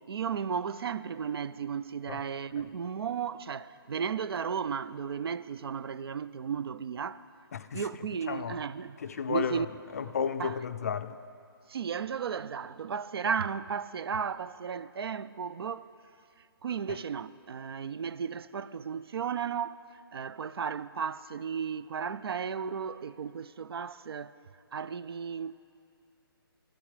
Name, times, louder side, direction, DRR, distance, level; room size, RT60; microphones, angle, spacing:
voice 1, 0.1-7.3 7.7-9.0 9.3-9.7 10.4-10.6 11.7-15.9 16.6-19.8 20.1-24.3 24.7-25.7, right 7 dB, 75° right, 0.4 m, -34 dB
voice 2, 7.5-7.8 8.3-8.6 9.0-9.7 9.9-11.2, left 7 dB, 40° left, 0.4 m, -33 dB
13.0 x 12.0 x 4.9 m
hypercardioid pair, 170°, 13 cm